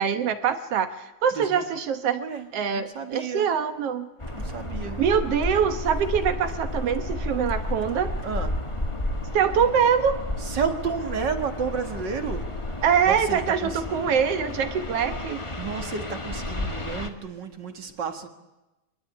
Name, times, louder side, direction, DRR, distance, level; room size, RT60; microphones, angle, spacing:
voice 1, 0.0-2.2 2.5-4.1 5.0-8.1 9.3-10.2 12.8-15.4, right 7 dB, 60° right, 9 dB, 2.0 m, -24 dB
voice 2, 2.2-3.5 4.4-5.0 8.2-8.5 10.4-13.8 15.6-18.3, right 6 dB, 40° right, 7 dB, 2.1 m, -32 dB
sound 1, 4.2-17.1, left 1 dB, 15° left, 1.0 m, -32 dB
25.0 x 20.5 x 9.8 m, 1.0 s
omnidirectional pair, 3.4 m